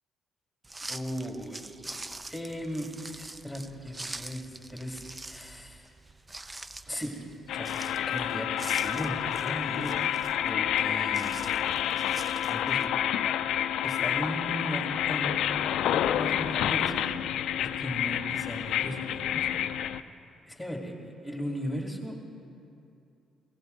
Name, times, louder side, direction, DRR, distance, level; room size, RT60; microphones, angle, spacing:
sound 1, 0.6-12.9, right 2 dB, 20° right, 0.4 m, -45 dB
voice 1, 0.9-2.0 2.3-5.9 6.9-7.2 7.5-10.0 10.4-11.3 12.4-17.1 17.8-19.5 20.5-22.2, equal, ahead, 0 dB, 2.4 m, -37 dB
sound 2, 7.5-20.0, left 10 dB, 80° left, 0.4 m, -29 dB
17.5 x 15.5 x 3.9 m, 2.5 s
cardioid pair, 90°, 0 cm